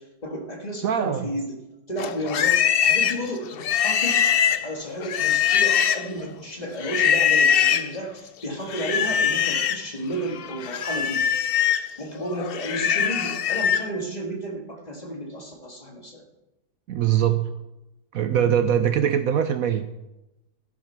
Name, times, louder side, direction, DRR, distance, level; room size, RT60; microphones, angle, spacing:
voice 1, 0.0-1.6 1.9-11.3 12.0-16.2, right 1 dB, 25° left, 1 dB, 1.9 m, -32 dB
voice 2, 0.8-1.3 16.9-17.5 18.1-19.9, right 9 dB, 65° right, 10 dB, 1.0 m, -22 dB
Livestock farm animals working animals, 2.0-6.2 6.8-7.9 8.7-9.8 10.2-13.9, left 8 dB, 70° left, 0.5 m, -22 dB
14.0 x 10.5 x 4.5 m, 0.95 s
omnidirectional pair, 1.7 m